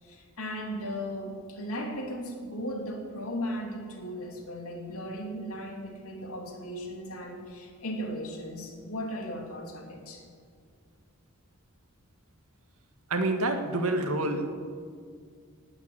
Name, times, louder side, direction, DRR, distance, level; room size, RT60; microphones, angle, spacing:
voice 1, 0.0-10.3, equal, 75° left, 2 dB, 2.7 m, -36 dB
voice 2, 13.1-14.5, right 2 dB, 80° right, 6 dB, 1.7 m, -27 dB
18.5 x 8.1 x 8.7 m, 2.1 s
head